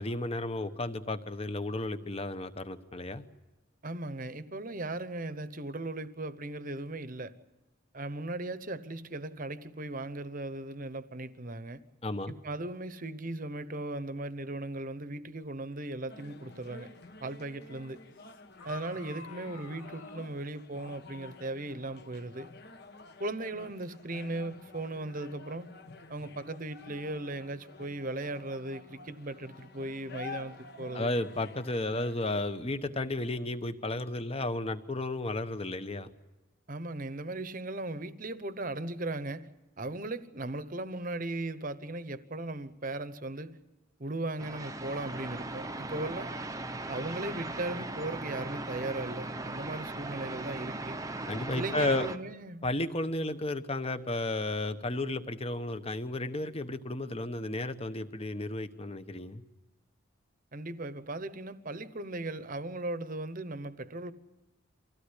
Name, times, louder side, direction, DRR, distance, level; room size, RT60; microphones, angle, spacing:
voice 1, 0.0-3.2 12.0-12.3 30.9-36.1 51.3-52.1 52.6-59.4, left 2 dB, 25° left, 1.1 m, -33 dB
voice 2, 3.8-7.3 7.9-11.8 12.3-16.9 17.2-18.0 18.6-22.5 23.2-25.7 26.1-31.1 36.7-39.5 39.8-43.6 44.0-46.3 46.9-51.0 51.5-52.6 60.5-64.1, right 2 dB, 40° right, 1.0 m, -37 dB
sound 1, 16.1-32.2, left 3 dB, 50° left, 1.4 m, -50 dB
sound 2, 18.2-20.4, left 3 dB, 70° left, 3.1 m, -48 dB
sound 3, 44.4-52.2, right 2 dB, 15° right, 0.8 m, -38 dB
25.0 x 16.5 x 9.9 m
head